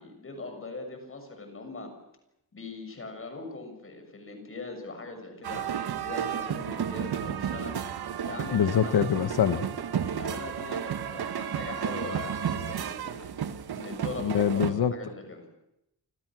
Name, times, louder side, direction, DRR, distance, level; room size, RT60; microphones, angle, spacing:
voice 1, 0.0-1.9 2.5-7.8 8.2-9.1 10.0-13.3 13.7-15.5, left 3 dB, 35° left, 6 dB, 6.8 m, -41 dB
sound 1, 5.4-14.7, right 8 dB, 85° right, 1.5 m, -32 dB
voice 2, 8.5-9.7 14.2-14.9, left 8 dB, 80° left, 10 dB, 1.4 m, -24 dB
29.0 x 26.5 x 6.3 m, 0.85 s
wide cardioid pair, 170°, 37 cm